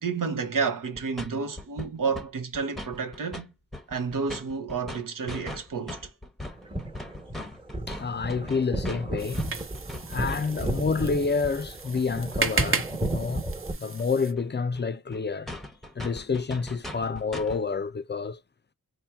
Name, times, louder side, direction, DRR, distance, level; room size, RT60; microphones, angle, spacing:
voice 1, 0.0-3.5 3.9-6.1, right 5 dB, 85° right, 0.9 m, -30 dB
sound 1, 1.0-1.3 1.6-2.3 2.5-3.4 3.7-10.7 14.0-14.1 14.4-14.5 14.8-14.9 15.1-15.2 15.5-17.6, left 1 dB, ahead, 0.8 m, -39 dB
sound 2, 6.5-13.7, right 1 dB, 15° right, 1.2 m, -33 dB
voice 2, 7.9-9.4 10.1-13.4 13.8-15.5 16.0-18.4, left 4 dB, 35° left, 0.5 m, -28 dB
sound 3, 9.2-14.3, right 5 dB, 40° right, 0.7 m, -34 dB
4.2 x 2.2 x 3.4 m
wide cardioid pair, 95°, 32 cm